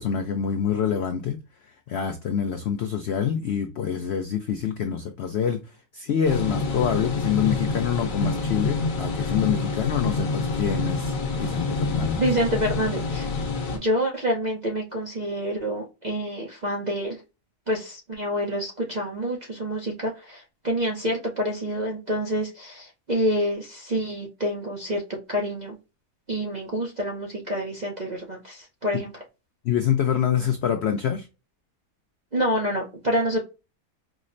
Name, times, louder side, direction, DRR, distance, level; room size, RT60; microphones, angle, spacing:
voice 1, 0.0-1.4 1.9-5.6 5.9-12.2 13.5-13.6 29.6-31.3, left 8 dB, 80° left, 0.6 m, -26 dB
sound 1, 6.2-13.8, left 3 dB, 60° left, 1.3 m, -27 dB
voice 2, 12.2-13.3 13.7-17.2 17.7-25.0 25.3-25.8 26.3-29.1 32.3-33.4, equal, 50° right, 0.5 m, -27 dB
4.9 x 2.1 x 2.5 m
omnidirectional pair, 1.7 m